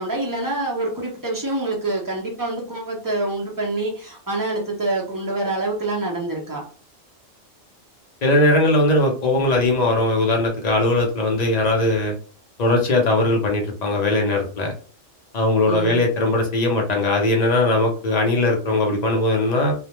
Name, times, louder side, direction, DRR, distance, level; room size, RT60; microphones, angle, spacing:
voice 1, 0.0-6.6 15.7-16.0, right 2 dB, 20° right, 0.5 m, -26 dB
voice 2, 8.2-12.1 12.6-14.7 15.3-19.7, left 2 dB, 45° left, 0.5 m, -19 dB
2.4 x 2.1 x 2.9 m
omnidirectional pair, 1.3 m